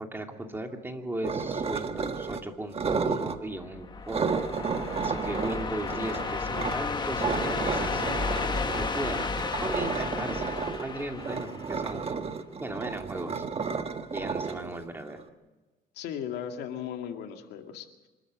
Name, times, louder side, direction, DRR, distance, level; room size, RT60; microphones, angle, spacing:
voice 1, 0.0-4.3 4.9-8.0 8.8-12.0 12.6-13.4 14.1-15.2, right 1 dB, 15° right, 3 dB, 2.6 m, -36 dB
sound 1, 1.2-2.4 2.7-3.4 4.1-6.8 7.2-15.2, right 5 dB, 35° right, 1.5 m, -32 dB
sound 2, 3.6-12.1, left 4 dB, 25° left, 1.4 m, -33 dB
voice 2, 16.0-18.1, left 9 dB, 80° left, 5 dB, 2.2 m, -37 dB
26.0 x 13.0 x 7.7 m, 1.2 s
cardioid pair, 110°, 17 cm